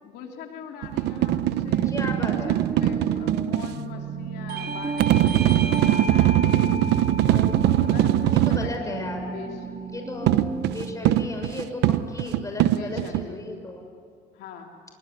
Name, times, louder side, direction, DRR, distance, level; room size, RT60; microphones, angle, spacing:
voice 1, 0.0-1.9 2.5-7.0 7.8-9.6 10.3-10.5 12.7-13.4 14.3-14.7, left 5 dB, 80° left, 2 dB, 3.1 m, -42 dB
sound 1, 0.8-3.7 5.0-8.7 10.3-13.2, right 13 dB, 85° right, 0.9 m, -21 dB
sound 2, 1.0-11.0, right 4 dB, 25° right, 4.1 m, -34 dB
voice 2, 1.8-2.7 7.3-8.0 8.3-9.3 9.9-10.3 10.7-13.8, left 2 dB, 20° left, 4 dB, 6.4 m, -35 dB
Bell / Doorbell, 4.5-9.7, right 3 dB, 65° right, 5.2 m, -35 dB
25.0 x 23.0 x 10.0 m, 2.1 s
cardioid pair, 110°, 17 cm